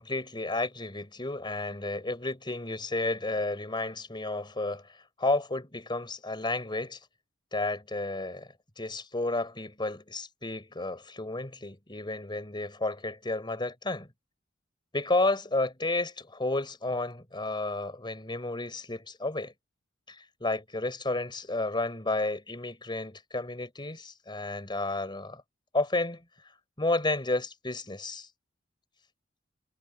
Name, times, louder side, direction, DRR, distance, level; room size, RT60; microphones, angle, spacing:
voice 1, 0.0-4.8 5.2-7.0 7.5-8.5 8.8-14.1 14.9-19.5 20.1-20.2 20.4-25.4 25.7-26.2 26.8-28.3, left 2 dB, 25° left, 4.2 m, -31 dB
head